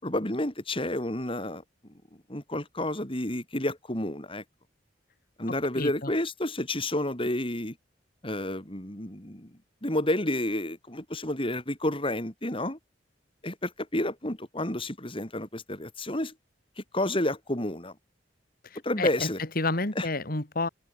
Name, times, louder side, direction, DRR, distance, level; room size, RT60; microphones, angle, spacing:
voice 1, 0.0-1.6 2.3-4.4 5.4-7.8 8.2-9.5 9.8-12.8 13.4-16.3 16.8-17.9 18.8-19.4 20.0-20.1, left 1 dB, 30° left, 5.8 m, -30 dB
voice 2, 5.8-6.1 18.6-20.7, left 2 dB, 50° left, 2.9 m, -30 dB
open air
head